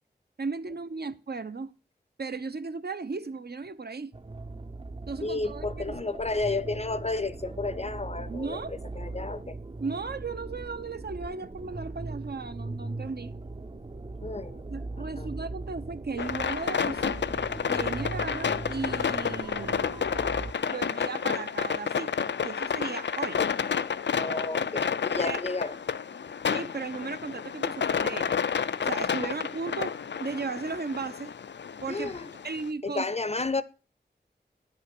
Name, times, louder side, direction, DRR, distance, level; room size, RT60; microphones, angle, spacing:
voice 1, 0.4-1.7 2.2-4.1 5.1-6.0 8.3-8.7 9.8-13.3 14.7-17.2 17.7-20.0 20.7-22.2 22.4-23.4 25.3-25.4 26.5-28.4 28.8-29.9 30.2-31.3 31.8-32.1 32.4-33.0, right 4 dB, 65° right, 0.9 m, -36 dB
sound 1, 4.1-20.5, right 2 dB, 30° right, 0.6 m, -39 dB
voice 2, 5.2-9.6 14.2-14.6 15.0-15.3 24.2-25.8 29.2-29.4 31.9-32.3 32.8-33.6, left 3 dB, 35° left, 0.6 m, -32 dB
sound 2, 16.2-32.7, left 7 dB, 90° left, 0.5 m, -30 dB
9.9 x 5.5 x 6.7 m
wide cardioid pair, 65°, 18 cm